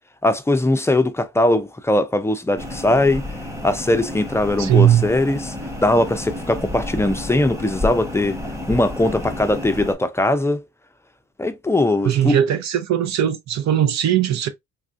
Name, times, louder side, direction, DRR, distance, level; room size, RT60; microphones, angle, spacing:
voice 1, 0.2-3.3 3.6-5.5 5.8-8.4 8.7-10.7 11.4-12.4, left 1 dB, 10° left, 0.4 m, -20 dB
sound 1, 2.6-10.0, left 2 dB, 10° right, 1.0 m, -31 dB
voice 2, 4.6-5.1 12.0-14.5, right 10 dB, 65° right, 0.6 m, -18 dB
3.4 x 2.5 x 2.4 m
cardioid pair, 90°, 30 cm